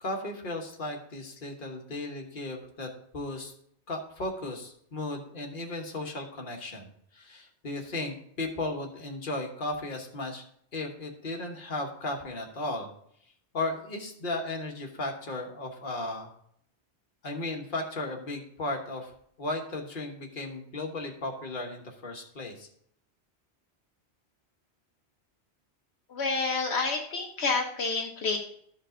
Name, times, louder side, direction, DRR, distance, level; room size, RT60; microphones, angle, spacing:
voice 1, 0.0-3.5 3.9-10.4 10.7-12.9 13.5-16.3 17.2-19.1 19.4-22.7, left 2 dB, 50° left, 2 dB, 1.4 m, -35 dB
voice 2, 26.1-28.4, left 4 dB, 75° left, 1 dB, 1.2 m, -29 dB
13.0 x 5.4 x 3.8 m, 0.67 s
omnidirectional pair, 1.1 m